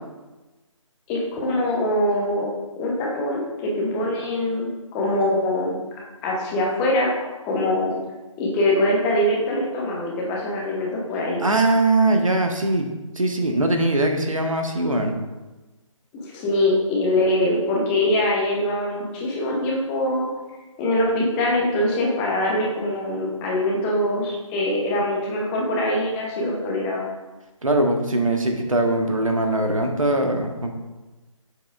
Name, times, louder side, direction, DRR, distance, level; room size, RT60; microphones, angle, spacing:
voice 1, 1.1-2.5 2.8-5.8 6.2-7.1 7.4-8.0 8.4-11.4 16.1-20.3 20.8-27.0, left 1 dB, 10° left, -3 dB, 0.7 m, -23 dB
voice 2, 11.4-12.9 13.2-15.1 27.6-30.7, right 2 dB, 75° right, 4 dB, 1.2 m, -21 dB
8.1 x 6.9 x 2.4 m, 1.1 s
figure-of-eight pair, 150°, 17 cm